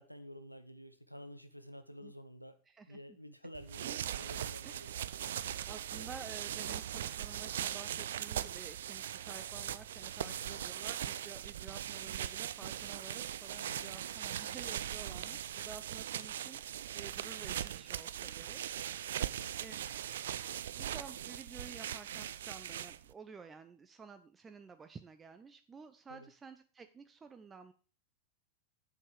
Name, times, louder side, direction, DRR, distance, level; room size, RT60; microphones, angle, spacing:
voice 1, 0.0-2.6 2.9-4.9 10.2-10.7 13.6-13.9 14.5-14.6 19.2-19.8 26.1-26.3, equal, 90° left, 10 dB, 0.8 m, -51 dB
voice 2, 2.7-3.0 3.8-4.3 4.6-4.9 5.4-18.6 19.6-19.8 20.8-27.7, right 5 dB, 15° right, 9 dB, 0.6 m, -52 dB
sound 1, 3.5-23.1, right 10 dB, 60° right, 0.4 m, -40 dB
8.5 x 7.2 x 4.9 m, 0.39 s
figure-of-eight pair, 90°, 0 cm